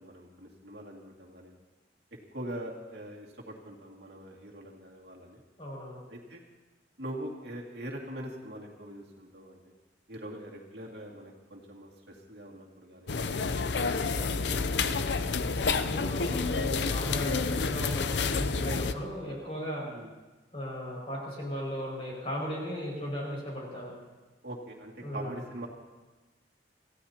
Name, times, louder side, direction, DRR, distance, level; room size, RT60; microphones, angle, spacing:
voice 1, 0.0-1.5 2.3-5.4 6.1-6.4 7.0-9.6 10.1-13.2 13.7-15.3 19.8-20.1 24.4-25.7, right 1 dB, 70° right, -1 dB, 2.3 m, -43 dB
voice 2, 5.6-6.0 15.8-19.9 20.5-23.9 25.0-25.4, equal, 30° left, -3 dB, 5.7 m, -36 dB
sound 1, 13.1-18.9, left 4 dB, 75° left, 0.6 m, -29 dB
27.0 x 15.5 x 2.9 m, 1.2 s
head